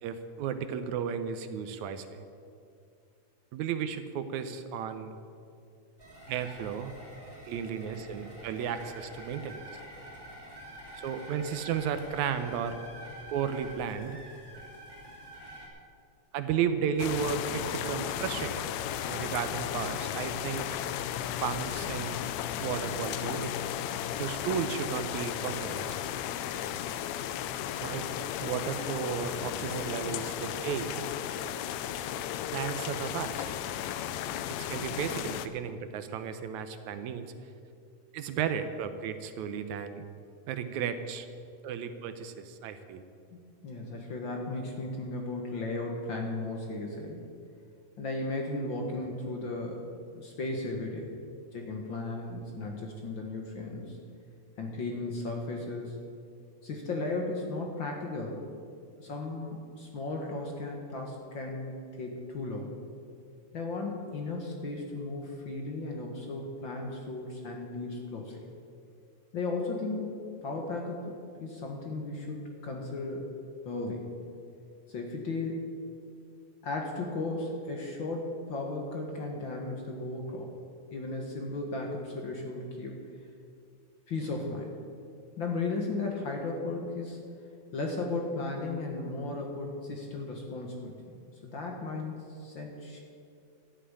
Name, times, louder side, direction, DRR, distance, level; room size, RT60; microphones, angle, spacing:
voice 1, 0.0-2.2 3.5-5.1 6.3-6.9 7.5-9.6 11.0-12.8 13.3-14.2 16.3-18.7 19.1-20.7 21.4-22.3 22.6-23.5 24.2-26.0 27.8-31.1 32.5-33.5 34.4-37.3 38.1-40.0 40.5-41.3 41.6-43.0, right 7 dB, 75° right, 10 dB, 2.0 m, -34 dB
sound 1, 6.0-15.7, right 1 dB, 10° right, 3.1 m, -47 dB
sound 2, 17.0-35.5, left 10 dB, 80° left, 1.8 m, -35 dB
voice 2, 43.3-47.2 48.0-49.8 50.1-54.0 54.6-56.0 56.6-58.5 59.0-62.7 63.5-68.5 69.3-73.3 73.6-74.1 74.9-75.7 76.6-80.5 80.9-83.0 84.1-84.7 85.4-87.2 87.7-93.0, left 2 dB, 50° left, 1 dB, 1.7 m, -35 dB
12.5 x 7.6 x 9.8 m, 2.4 s
omnidirectional pair, 3.5 m